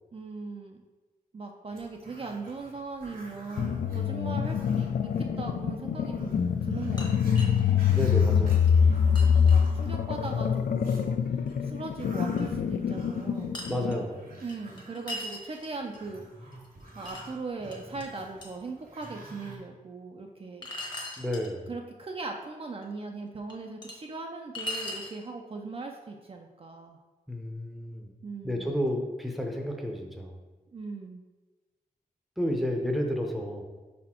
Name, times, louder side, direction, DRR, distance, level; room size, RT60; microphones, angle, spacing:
voice 1, 0.1-0.8 1.3-6.3 6.6-7.5 9.1-13.6 14.4-16.2 17.0-20.7 21.7-27.0 28.2-28.7 30.7-31.2, right 3 dB, 40° right, 2 dB, 0.4 m, -39 dB
Growling, 1.7-5.2 5.6-5.7 6.0-11.1 11.5-19.6, right 1 dB, 85° right, 1.8 m, -49 dB
sound 1, 3.6-14.0, left 7 dB, 85° left, 0.4 m, -25 dB
voice 2, 4.1-4.6 7.9-8.8 13.6-14.3 21.2-21.7 27.3-28.1 28.4-30.4 32.4-33.6, equal, ahead, 2 dB, 0.7 m, -31 dB
sound 2, 6.7-7.7 8.2-8.3 8.7-8.8 9.1-9.7 11.5-11.6 12.4-12.5 13.5-14.0 14.5-16.0 16.5-17.2 17.7-18.0 18.4-18.5 19.0-19.1 20.6-21.5 22.8-22.9 23.5-24.0 24.5-25.2, left 1 dB, 30° left, 1.0 m, -38 dB
5.4 x 4.2 x 4.3 m, 1.2 s
wide cardioid pair, 150°, 15 cm